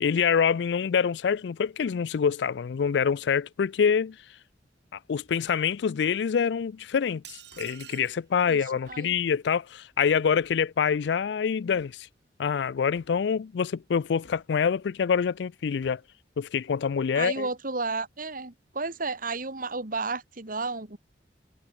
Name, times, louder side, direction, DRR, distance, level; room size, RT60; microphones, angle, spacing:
voice 1, 0.0-4.2 5.1-7.2 7.6-12.1 12.4-16.0 16.4-17.5, left 6 dB, 70° left, 0.4 m, -26 dB
Hammer, 6.0-6.3 7.5-7.8 8.9-9.2 10.4-10.7 11.0-11.3 11.8-12.1 12.9-13.3 14.2-14.6 15.8-16.1, left 2 dB, 85° left, 3.9 m, -58 dB
sound 1, 7.2-8.2, right 11 dB, 70° right, 2.1 m, -46 dB
voice 2, 17.1-21.0, right 3 dB, 50° right, 2.1 m, -32 dB
head